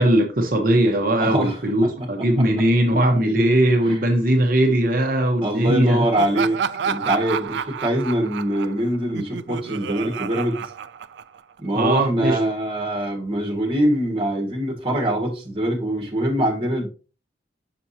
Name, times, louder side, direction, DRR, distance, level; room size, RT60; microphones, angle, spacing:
voice 1, 0.0-6.1 11.7-12.4, right 1 dB, 50° right, 0.9 m, -19 dB
voice 2, 1.2-2.1 2.4-2.5 3.8-4.0 5.4-6.6 6.8-10.7 11.6-16.9, right 1 dB, 30° right, 1.7 m, -23 dB
Laughter, 6.2-11.6, right 7 dB, 70° right, 0.3 m, -29 dB
6.0 x 6.0 x 2.8 m
head